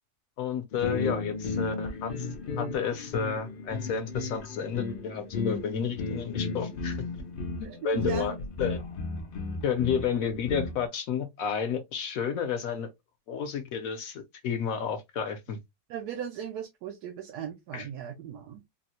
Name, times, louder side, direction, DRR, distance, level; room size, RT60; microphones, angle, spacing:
voice 1, 0.4-2.3 2.6-7.0 7.8-8.8 9.6-12.9 13.3-15.6 17.7-17.9, left 7 dB, 65° left, 1.0 m, -31 dB
sound 1, 0.7-10.9, left 4 dB, 85° left, 0.4 m, -34 dB
voice 2, 7.6-8.3 15.9-18.6, right 9 dB, 85° right, 1.2 m, -38 dB
3.7 x 2.1 x 2.8 m
omnidirectional pair, 1.7 m